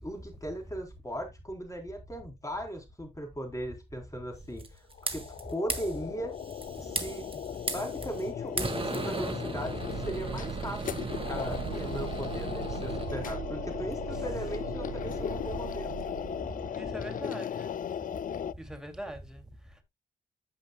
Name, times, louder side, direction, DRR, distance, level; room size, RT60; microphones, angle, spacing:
voice 1, 0.0-4.8 5.1-6.3 6.8-7.4 7.7-16.0, right 1 dB, 15° left, 3.6 m, -38 dB
sound 1, 4.6-5.4 5.7-5.9 6.4-8.3 8.6-13.2, right 3 dB, 25° right, 1.8 m, -37 dB
sound 2, 4.9-18.5, left 8 dB, 40° left, 0.4 m, -37 dB
sound 3, 9.6-16.9, right 12 dB, 65° right, 0.4 m, -41 dB
voice 2, 16.4-17.8 18.5-19.8, right 1 dB, 5° right, 2.4 m, -42 dB
15.0 x 5.2 x 2.2 m
hypercardioid pair, 40°, 21 cm